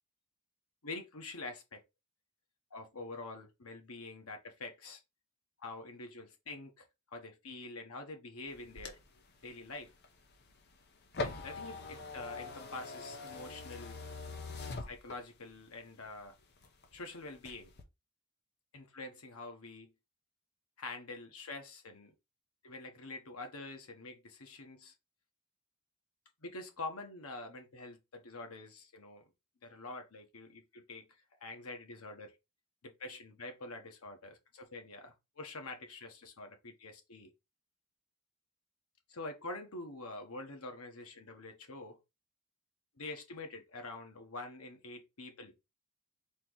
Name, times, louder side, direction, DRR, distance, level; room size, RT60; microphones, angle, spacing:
voice 1, 0.8-1.8 2.7-5.0 5.6-6.9 7.1-9.0 9.4-9.9 11.2-14.0 14.9-16.4 16.9-17.7 18.7-19.9 20.8-22.1 22.6-24.9 26.4-29.3 29.6-31.1 31.4-32.3 32.8-37.3 39.1-42.0 43.0-45.5, left 2 dB, 85° left, 1.3 m, -46 dB
sound 1, 8.5-15.5 16.0-17.0 17.3-17.8, left 3 dB, 50° left, 0.8 m, -43 dB
4.3 x 3.0 x 3.9 m
head